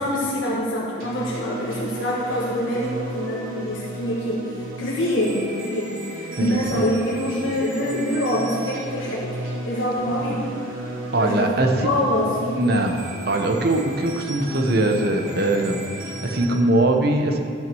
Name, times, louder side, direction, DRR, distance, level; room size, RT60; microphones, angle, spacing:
voice 1, 0.0-4.5 4.8-9.3 9.7-10.5 11.2-12.6, equal, 70° left, -5 dB, 1.6 m, -25 dB
sound 1, 1.0-16.5, right 1 dB, 85° right, 2.6 m, -34 dB
voice 2, 6.4-6.9 11.1-11.9 12.6-13.0 13.3-17.4, right 1 dB, 50° right, 4 dB, 0.9 m, -21 dB
12.5 x 6.1 x 6.9 m, 2.3 s
head